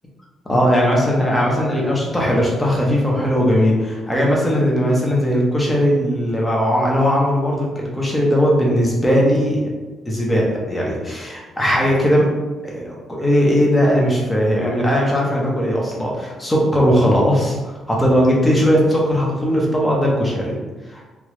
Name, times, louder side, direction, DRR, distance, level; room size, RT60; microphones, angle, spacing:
voice 1, 0.4-9.7 10.0-12.3 12.6-20.5 20.9-21.0, equal, 10° left, -3 dB, 1.0 m, -18 dB
3.4 x 2.5 x 3.1 m, 1.2 s
cardioid pair, 95°, 0 cm